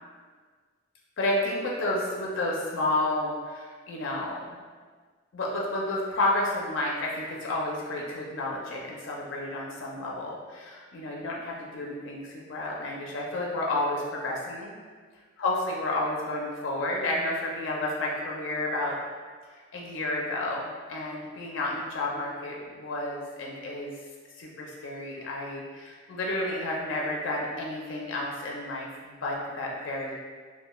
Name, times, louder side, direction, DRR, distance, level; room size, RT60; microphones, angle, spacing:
voice 1, 1.2-4.6 5.3-14.7 15.4-19.0 19.5-23.9 24.4-30.2, left 2 dB, 90° left, -2 dB, 0.4 m, -31 dB
2.2 x 2.1 x 3.1 m, 1.5 s
head